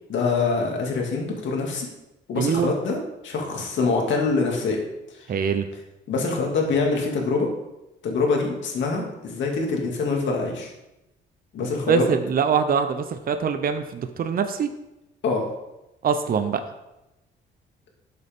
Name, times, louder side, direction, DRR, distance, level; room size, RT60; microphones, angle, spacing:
voice 1, 0.1-1.9 2.3-3.0 3.2-4.8 6.1-7.5 8.0-10.7 11.5-12.1 15.2-15.5, left 4 dB, 70° left, 0 dB, 2.4 m, -24 dB
voice 2, 2.3-2.7 5.3-5.7 11.6-14.7 16.0-16.6, right 6 dB, 45° right, 8 dB, 0.8 m, -23 dB
12.0 x 6.7 x 3.7 m, 0.94 s
cardioid pair, 90°, 20 cm